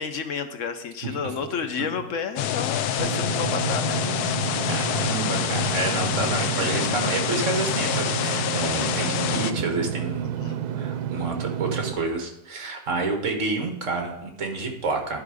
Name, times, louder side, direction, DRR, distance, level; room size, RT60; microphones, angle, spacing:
voice 1, 0.0-4.0 10.2-10.6, left 6 dB, 60° left, 8 dB, 1.0 m, -31 dB
sound 1, 2.4-9.5, left 10 dB, 85° left, 1.1 m, -26 dB
Engine / Mechanisms, 3.0-11.9, right 9 dB, 85° right, 1.1 m, -30 dB
voice 2, 4.7-15.2, right 3 dB, 55° right, 3 dB, 1.7 m, -29 dB
11.0 x 5.1 x 4.8 m, 0.83 s
omnidirectional pair, 1.6 m